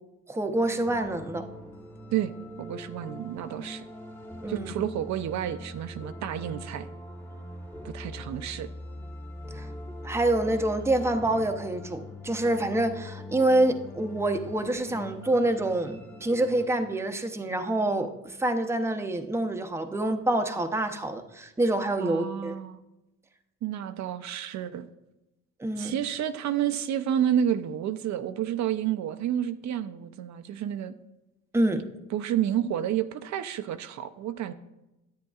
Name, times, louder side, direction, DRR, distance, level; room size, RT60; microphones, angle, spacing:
voice 1, 0.3-1.5 4.4-4.7 9.5-9.7 10.0-22.6 25.6-26.0 31.5-31.8, right 1 dB, 10° right, 6 dB, 0.6 m, -26 dB
sound 1, 0.6-16.7, left 1 dB, 10° left, 1.1 m, -42 dB
voice 2, 2.6-3.9 4.5-6.9 7.8-8.7 22.0-22.8 23.6-24.9 25.8-30.9 32.1-34.5, right 10 dB, 65° right, 9 dB, 0.5 m, -30 dB
10.5 x 8.3 x 2.3 m, 0.96 s
cardioid pair, 90°, 30 cm